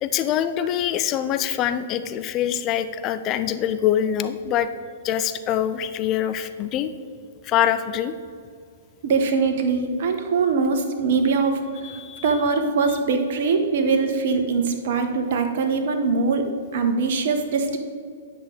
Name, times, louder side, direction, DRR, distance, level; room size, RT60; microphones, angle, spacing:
voice 1, 0.0-4.7 5.0-6.9 7.4-8.1 11.8-12.2, left 10 dB, 30° left, 11 dB, 0.4 m, -24 dB
voice 2, 9.0-16.5 16.7-17.8, right 4 dB, 55° right, 6 dB, 1.0 m, -22 dB
10.0 x 5.9 x 3.8 m, 2.2 s
figure-of-eight pair, 110°, 0 cm